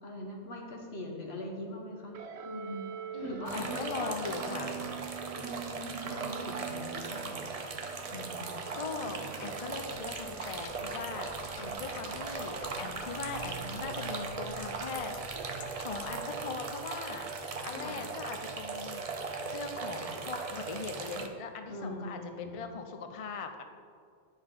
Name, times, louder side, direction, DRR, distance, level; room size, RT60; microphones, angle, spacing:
voice 1, 0.0-2.2 2.4-2.8 3.2-4.5 4.8-4.9 5.4-7.7 8.1-8.5 11.6-11.7 17.8-17.9 21.7-22.8, left 1 dB, 65° left, 0 dB, 1.4 m, -42 dB
sound 1, 2.1-16.9, right 7 dB, 75° right, 0.9 m, -47 dB
voice 2, 3.1-4.8 8.7-19.0 19.5-23.6, left 5 dB, 50° left, 6 dB, 0.4 m, -40 dB
sound 2, 3.4-21.3, right 4 dB, 45° right, 0.5 m, -39 dB
sound 3, 9.7-16.1, left 4 dB, 80° left, 0.9 m, -50 dB
9.7 x 5.3 x 3.7 m, 2.2 s
omnidirectional pair, 1.2 m